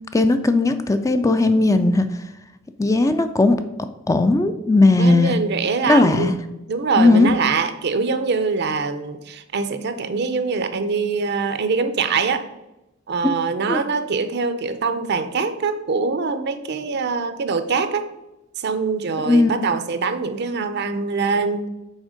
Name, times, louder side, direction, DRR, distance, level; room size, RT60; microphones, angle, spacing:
voice 1, 0.1-2.1 2.8-3.6 4.1-5.4 5.9-6.3 7.0-7.3 13.7-13.8 19.2-19.7, left 2 dB, 15° left, 9 dB, 0.3 m, -17 dB
voice 2, 5.0-6.3 6.7-12.4 13.1-18.0 18.6-21.6, right 4 dB, 55° right, 10 dB, 0.6 m, -23 dB
6.3 x 4.3 x 5.0 m, 0.93 s
head